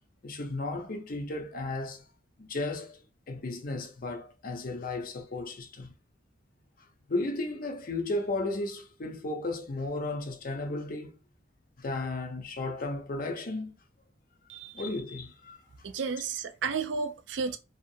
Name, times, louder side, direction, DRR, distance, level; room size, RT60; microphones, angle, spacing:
voice 1, 0.2-2.0 2.4-3.0 3.3-5.9 7.1-11.1 11.8-13.7 14.7-15.6 16.9-17.0, left 2 dB, 50° left, 0.6 m, -34 dB
voice 2, 15.8-17.6, right 5 dB, 70° right, 0.4 m, -32 dB
2.6 x 2.4 x 2.6 m
head